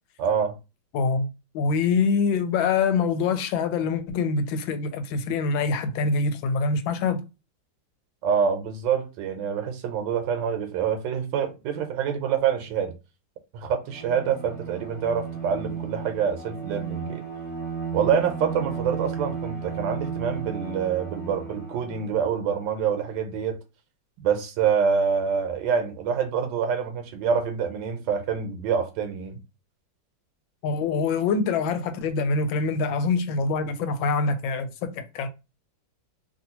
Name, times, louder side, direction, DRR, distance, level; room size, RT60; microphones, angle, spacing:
voice 1, 0.2-0.5 8.2-12.9 13.5-17.2 17.9-23.6 24.2-29.4, right 7 dB, 80° right, 1.2 m, -26 dB
voice 2, 0.9-7.2 30.6-35.3, left 4 dB, 90° left, 1.3 m, -25 dB
Bowed string instrument, 13.8-22.3, right 6 dB, 15° right, 0.7 m, -34 dB
3.0 x 2.6 x 2.8 m
omnidirectional pair, 2.1 m